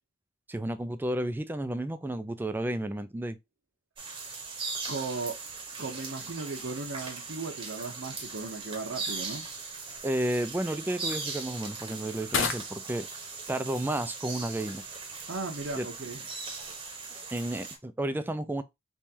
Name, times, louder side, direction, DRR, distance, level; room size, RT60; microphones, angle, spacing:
voice 1, 0.5-3.4 10.0-13.1 13.5-14.8 15.7-15.9 17.3-18.6, right 1 dB, 10° right, 0.3 m, -32 dB
sound 1, 4.0-17.8, right 4 dB, 25° right, 0.9 m, -39 dB
voice 2, 4.9-5.3 5.8-9.4 15.3-16.2, right 3 dB, 75° right, 0.7 m, -36 dB
sound 2, 8.0-17.2, left 5 dB, 75° left, 0.7 m, -41 dB
3.5 x 3.1 x 2.7 m
head